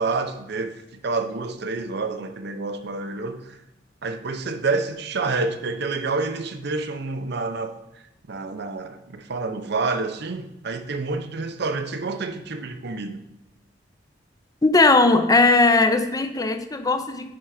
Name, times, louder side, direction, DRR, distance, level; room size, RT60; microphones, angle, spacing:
voice 1, 0.0-3.6 4.0-7.8 8.3-13.2, right 3 dB, 60° right, 0.7 m, -28 dB
voice 2, 14.6-17.3, left 3 dB, 20° left, 0.6 m, -18 dB
10.0 x 3.9 x 4.9 m
head